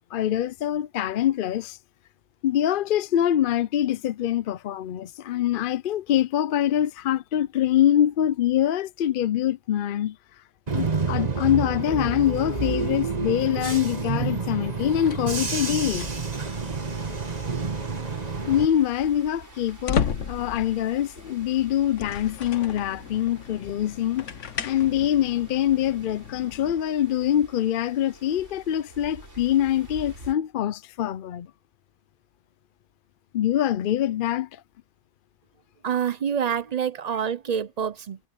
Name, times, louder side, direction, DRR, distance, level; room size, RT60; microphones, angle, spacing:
voice 1, 0.1-1.8 2.4-10.2 10.7-16.1 18.5-24.3 24.6-31.5 33.3-34.6, left 11 dB, 60° left, 0.6 m, -24 dB
Bus / Engine, 10.7-18.7, right 4 dB, 35° right, 1.6 m, -29 dB
sound 1, 15.0-16.5 17.2-17.5 19.6-26.7, left 7 dB, 90° left, 1.4 m, -34 dB
sound 2, 15.5-30.3, right 1 dB, 80° right, 8.5 m, -47 dB
voice 2, 35.8-38.2, right 8 dB, 55° right, 0.4 m, -27 dB
omnidirectional pair, 1.2 m